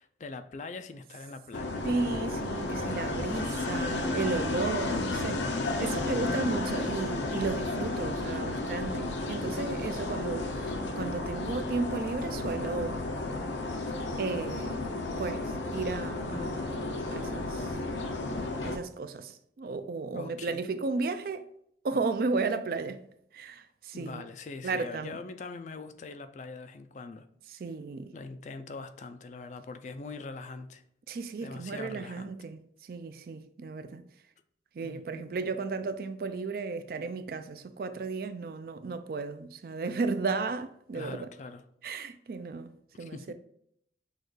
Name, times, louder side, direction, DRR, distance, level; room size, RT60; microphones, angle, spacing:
voice 1, 0.0-1.8 5.9-6.5 20.1-20.7 23.9-27.3 28.1-30.8 31.4-32.3 34.8-35.3 40.9-41.6 43.0-43.3, left 3 dB, 40° left, 0.3 m, -42 dB
sound 1, 1.5-18.8, left 2 dB, 85° left, 0.6 m, -33 dB
voice 2, 1.8-13.1 14.2-14.8 15.2-16.8 17.1-17.8 18.6-21.5 21.8-23.0 23.3-24.2 24.6-25.2 27.5-28.1 31.1-34.0 34.7-41.3 41.8-42.7 43.0-43.3, right 4 dB, 50° right, 0.3 m, -34 dB
6.3 x 2.3 x 3.2 m
head